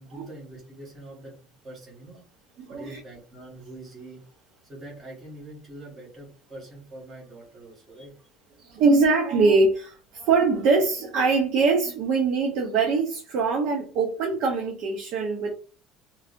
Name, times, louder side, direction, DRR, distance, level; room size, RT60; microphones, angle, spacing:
voice 1, 0.0-2.3 2.7-4.2 4.6-8.1, right 1 dB, 25° right, -4 dB, 1.7 m, -44 dB
voice 2, 2.6-3.0 8.6-15.5, right 4 dB, 60° right, 2 dB, 0.8 m, -23 dB
3.3 x 3.2 x 2.6 m, 0.36 s
cardioid pair, 165°, 0 cm